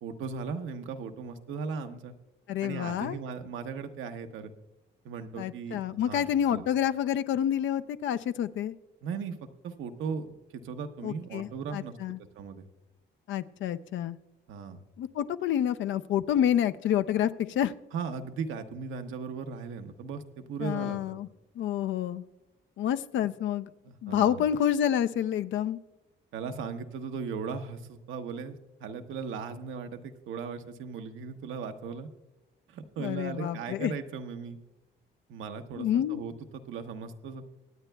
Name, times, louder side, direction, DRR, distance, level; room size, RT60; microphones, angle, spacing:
voice 1, 0.0-2.2 2.6-4.5 5.0-6.6 9.0-12.0 12.4-12.7 14.5-14.8 17.9-21.2 23.8-24.4 26.3-32.1 32.7-34.6 35.3-37.4, right 5 dB, 80° right, 7 dB, 0.9 m, -37 dB
voice 2, 2.5-3.2 5.4-8.7 11.0-12.2 13.3-14.2 15.0-17.7 20.6-21.3 21.6-22.2 22.8-23.7 24.0-25.8 33.0-33.9 35.8-36.2, left 10 dB, 70° left, 13 dB, 0.5 m, -28 dB
24.5 x 8.9 x 2.3 m, 1.1 s
cardioid pair, 90°, 20 cm